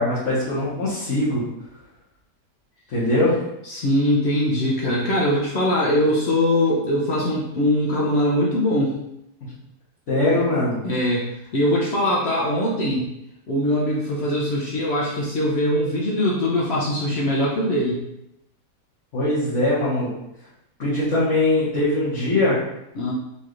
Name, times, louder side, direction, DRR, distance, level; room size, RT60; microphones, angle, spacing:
voice 1, 0.0-1.4 2.9-3.4 9.4-9.5 10.1-10.8 19.1-20.1 20.8-22.6, left 1 dB, 50° left, -11 dB, 1.3 m, -21 dB
voice 2, 3.6-8.9 10.8-11.2 11.5-13.0 13.5-18.0 22.9-23.1, left 1 dB, 80° left, -4 dB, 0.5 m, -21 dB
4.1 x 3.1 x 2.5 m, 0.84 s
omnidirectional pair, 1.9 m